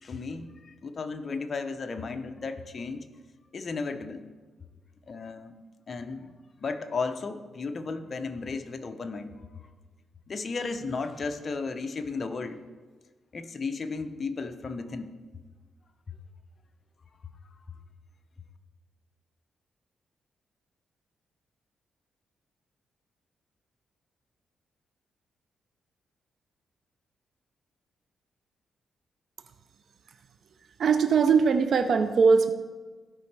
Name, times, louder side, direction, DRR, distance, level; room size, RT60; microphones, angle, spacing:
voice 1, 0.0-3.1 3.5-4.2 5.1-5.5 5.9-6.3 6.6-9.3 10.3-12.6 13.3-15.1 16.1-16.2, left 4 dB, 45° left, 7 dB, 0.7 m, -34 dB
voice 2, 30.8-32.5, right 5 dB, 65° right, 8 dB, 0.5 m, -21 dB
15.5 x 5.2 x 3.3 m, 1.4 s
cardioid pair, 80°, 0 cm